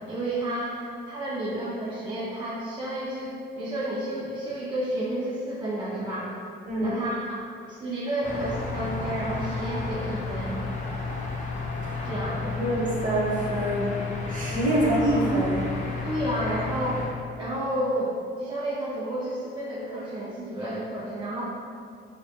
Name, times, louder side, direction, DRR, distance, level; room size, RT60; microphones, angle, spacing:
voice 1, 0.0-6.3 6.8-7.4 7.7-10.6 12.0-12.6 16.0-18.1 18.4-21.4, right 1 dB, 25° right, -7 dB, 0.3 m, -31 dB
voice 2, 6.7-7.0 11.8-12.1 12.5-13.9 14.3-15.6, right 1 dB, 40° right, -6 dB, 0.7 m, -25 dB
sound 1, 8.2-17.1, left 3 dB, 35° left, 0.4 m, -32 dB
2.1 x 2.1 x 2.7 m, 2.3 s
cardioid pair, 90°, 20 cm